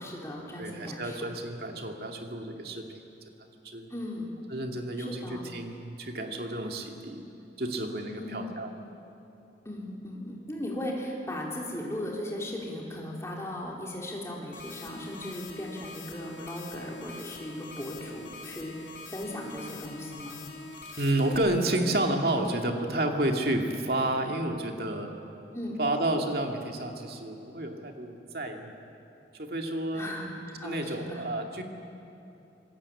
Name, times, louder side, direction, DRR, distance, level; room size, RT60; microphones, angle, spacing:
voice 1, 0.0-1.3 3.9-4.4 5.0-5.5 8.1-8.5 9.6-20.4 25.5-25.8 29.9-31.2, left 1 dB, 15° left, -2 dB, 3.9 m, -37 dB
voice 2, 0.6-2.9 3.6-3.9 4.5-7.2 7.6-8.7 20.9-25.1 25.8-28.8 29.4-30.1 30.6-31.6, right 1 dB, 60° right, 3 dB, 2.4 m, -30 dB
sound 1, 14.5-21.4, left 3 dB, 85° left, 3.4 m, -44 dB
26.0 x 19.5 x 8.5 m, 2.9 s
head